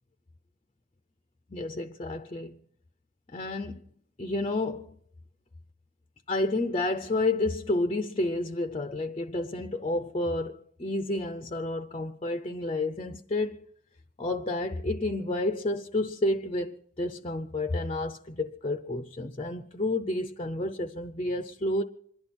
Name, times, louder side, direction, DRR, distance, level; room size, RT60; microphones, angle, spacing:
voice 1, 1.5-2.6 3.3-3.8 4.2-4.9 6.3-13.7 14.2-21.8, left 2 dB, 25° left, 0.6 m, -30 dB
27.5 x 11.5 x 4.3 m
head